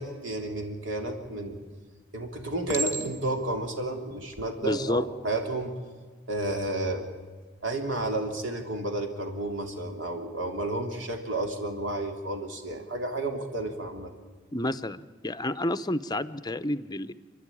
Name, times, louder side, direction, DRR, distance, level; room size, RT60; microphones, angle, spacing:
voice 1, 0.0-1.6 2.1-5.7 6.3-7.0 7.6-14.1, right 2 dB, 65° right, 4 dB, 3.3 m, -31 dB
Chink clink, 1.2-1.7 2.7-3.5 4.2-4.5, right 3 dB, 15° right, 1.8 m, -34 dB
voice 2, 4.6-5.0 14.5-17.1, left 1 dB, 20° left, 12 dB, 0.7 m, -30 dB
30.0 x 11.5 x 10.0 m, 1.4 s
head